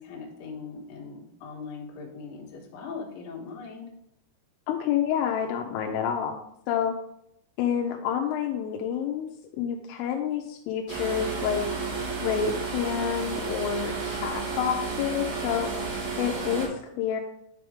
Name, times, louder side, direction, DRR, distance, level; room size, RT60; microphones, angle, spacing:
voice 1, 0.0-3.9, left 5 dB, 65° left, -3 dB, 2.5 m, -40 dB
voice 2, 4.7-6.4 6.7-6.9 7.6-9.3 9.6-11.7 12.2-15.7 16.2-17.2, left 8 dB, 85° left, 3 dB, 3.0 m, -28 dB
sound 1, 10.9-16.7, right 4 dB, 80° right, 5.4 m, -32 dB
10.5 x 4.6 x 3.6 m, 0.76 s
omnidirectional pair, 5.9 m